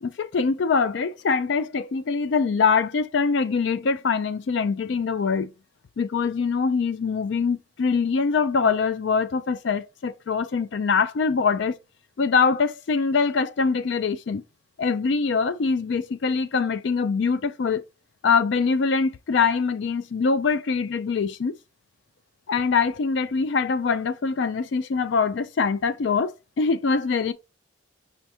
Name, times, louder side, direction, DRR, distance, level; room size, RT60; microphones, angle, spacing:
voice 1, 0.0-5.5 6.0-11.8 12.2-14.4 14.8-17.8 18.2-21.5 22.5-27.3, left 5 dB, 60° left, 0.4 m, -23 dB
5.1 x 3.4 x 2.7 m
head